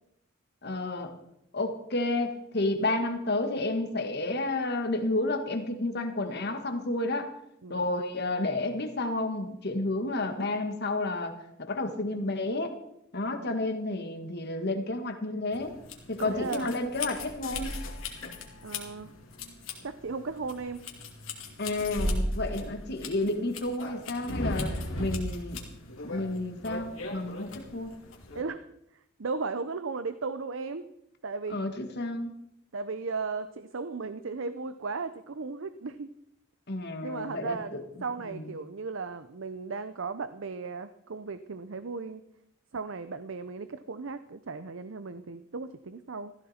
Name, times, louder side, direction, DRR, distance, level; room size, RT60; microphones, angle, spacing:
voice 1, 0.6-1.1 1.5-7.3 7.7-12.7 13.1-15.7 16.1-17.8 21.6-24.7 25.0-25.6 26.0-28.0 31.5-32.3 36.7-37.8 38.2-38.5, left 2 dB, 55° left, 6 dB, 1.8 m, -31 dB
sound 1, 15.5-28.4, left 1 dB, 70° left, 2.7 m, -37 dB
voice 2, 16.2-16.7 18.6-19.1 19.8-20.8 28.3-28.7 29.2-30.9 31.2-31.6 32.7-36.1 37.0-42.2 42.7-46.3, right 4 dB, 65° right, 12 dB, 0.7 m, -36 dB
16.0 x 14.5 x 4.4 m, 0.79 s
head